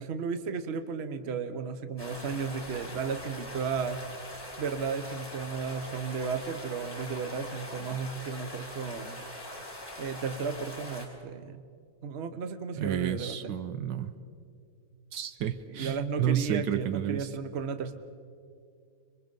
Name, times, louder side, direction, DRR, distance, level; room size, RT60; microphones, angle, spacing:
voice 1, 0.0-4.0 4.6-9.2 10.0-11.6 12.0-13.5 15.7-17.9, right 5 dB, 40° right, 10 dB, 1.0 m, -34 dB
sound 1, 2.0-11.1, left 1 dB, 10° left, 3.2 m, -42 dB
voice 2, 12.7-14.1 15.1-17.3, right 10 dB, 70° right, 11 dB, 1.4 m, -31 dB
26.5 x 23.0 x 5.5 m, 2.3 s
omnidirectional pair, 2.1 m